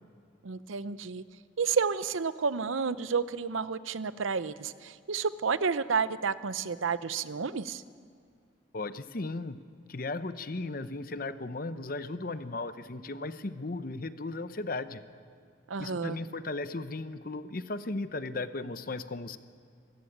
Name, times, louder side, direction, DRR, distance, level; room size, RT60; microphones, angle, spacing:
voice 1, 0.4-1.2 1.6-7.8 15.7-16.2, right 5 dB, 90° right, 15 dB, 0.7 m, -30 dB
voice 2, 8.7-9.6 9.9-15.0 15.8-19.4, left 2 dB, 45° left, 12 dB, 0.8 m, -36 dB
24.0 x 14.5 x 8.8 m, 2.1 s
head